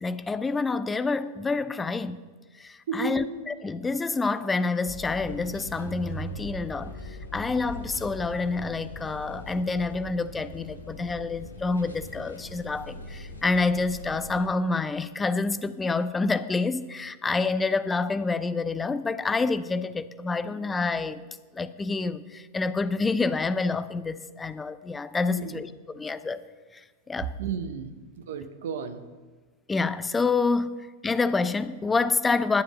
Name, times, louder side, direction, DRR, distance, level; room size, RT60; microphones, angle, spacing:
voice 1, 0.0-2.2 2.6-21.2 21.5-26.4 26.7-27.3 29.7-32.6, left 3 dB, 15° left, 0.5 m, -28 dB
voice 2, 2.9-3.3 25.3-25.6 27.4-27.9 28.3-29.0, right 6 dB, 60° right, 1.0 m, -32 dB
sound 1, 4.8-14.5, left 1 dB, 75° left, 1.5 m, -41 dB
11.5 x 7.4 x 6.7 m
figure-of-eight pair, 90°, 0 cm